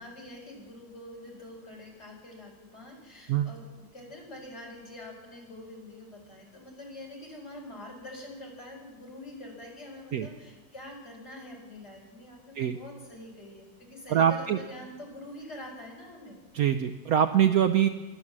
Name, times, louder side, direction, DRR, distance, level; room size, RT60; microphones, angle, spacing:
voice 1, 0.0-3.7 3.9-16.4, left 1 dB, 35° left, -1 dB, 4.6 m, -45 dB
voice 2, 14.1-14.6 16.5-17.9, right 9 dB, 65° right, 9 dB, 0.9 m, -23 dB
23.5 x 8.3 x 7.4 m, 1.3 s
omnidirectional pair, 1.9 m